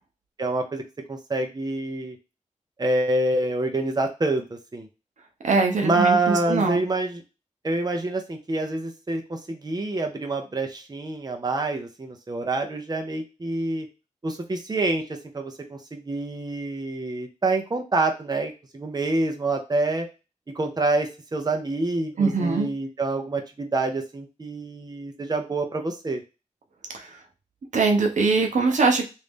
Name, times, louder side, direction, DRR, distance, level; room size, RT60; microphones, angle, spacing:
voice 1, 0.4-0.8 1.1-2.2 2.8-4.9 5.8-7.2 7.6-13.9 14.2-20.1 20.5-26.2, right 2 dB, 35° right, 3 dB, 0.8 m, -27 dB
voice 2, 5.4-6.8 22.2-22.7 26.9-27.2 27.7-29.0, right 4 dB, 85° right, 3 dB, 0.8 m, -22 dB
3.1 x 2.7 x 3.5 m, 0.29 s
wide cardioid pair, 80°, 12 cm